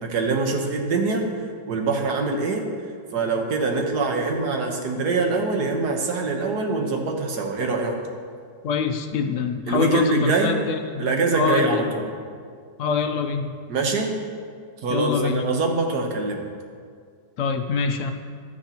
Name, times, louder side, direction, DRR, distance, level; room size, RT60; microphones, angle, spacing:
voice 1, 0.0-1.3 1.7-2.7 3.1-8.0 9.7-10.6 11.0-12.1 13.7-14.2 14.8-16.5, right 3 dB, 75° right, 2 dB, 1.6 m, -24 dB
voice 2, 8.6-11.9 12.8-13.5 14.9-15.4 17.4-18.1, left 5 dB, 65° left, 6 dB, 0.8 m, -25 dB
12.0 x 9.5 x 2.9 m, 2.1 s
omnidirectional pair, 1.8 m